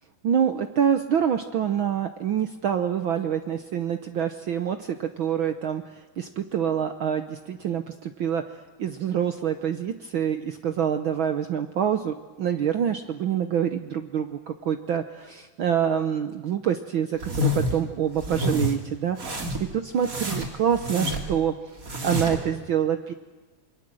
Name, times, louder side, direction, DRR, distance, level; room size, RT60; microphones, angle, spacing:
voice 1, 0.2-8.5 8.8-19.4 19.7-21.5 22.0-23.1, right 8 dB, 80° right, 8 dB, 1.1 m, -26 dB
sound 1, 17.2-17.8 18.2-18.7 19.2-19.7 20.0-21.4 21.8-22.5, left 1 dB, 30° right, 2.9 m, -28 dB
28.0 x 23.0 x 7.7 m, 1.3 s
omnidirectional pair, 3.6 m